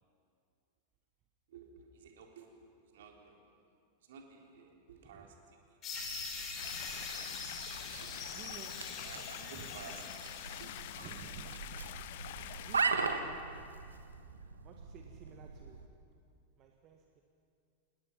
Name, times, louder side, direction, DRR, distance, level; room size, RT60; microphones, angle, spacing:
voice 1, 1.5-2.5 2.9-3.5 4.0-5.4 5.7-5.8 6.4-6.5 7.0-7.4 7.8-10.3 10.6-10.7, right 6 dB, 55° right, 1 dB, 3.5 m, -54 dB
sound 1, 5.8-11.4, left 4 dB, 30° left, 4.4 m, -44 dB
sound 2, 5.9-15.9, right 4 dB, 75° right, 1.4 m, -40 dB
sound 3, 6.6-12.8, left 14 dB, 50° left, 0.7 m, -46 dB
voice 2, 8.3-9.7 11.0-11.7 12.6-13.7 14.6-15.9 16.6-17.2, right 7 dB, 35° right, 3 dB, 1.6 m, -54 dB
27.0 x 20.5 x 5.8 m, 2.3 s
figure-of-eight pair, 90°, 0 cm